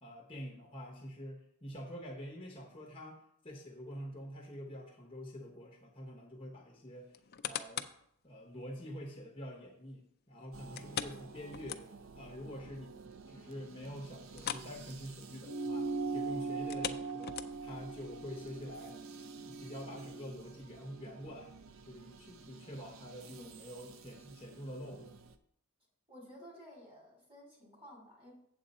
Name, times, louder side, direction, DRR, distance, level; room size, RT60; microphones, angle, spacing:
voice 1, 0.0-7.1 7.4-7.9 8.2-11.8 12.2-13.0 13.3-19.0 19.5-21.5 21.9-25.1, equal, 25° left, 0 dB, 1.0 m, -46 dB
sound 1, 7.1-8.0 8.6-8.7 10.7-12.2 12.5-12.6 13.1-13.2 14.3-14.8 15.0-15.2 16.6-17.8 18.4-18.5, left 9 dB, 45° left, 0.4 m, -41 dB
sound 2, 10.5-25.4, right 5 dB, 65° right, 0.6 m, -54 dB
sound 3, 15.4-20.2, right 4 dB, 85° right, 1.0 m, -40 dB
voice 2, 23.2-23.6 26.1-28.3, equal, 25° right, -4 dB, 3.7 m, -54 dB
7.9 x 7.5 x 4.2 m, 0.70 s
head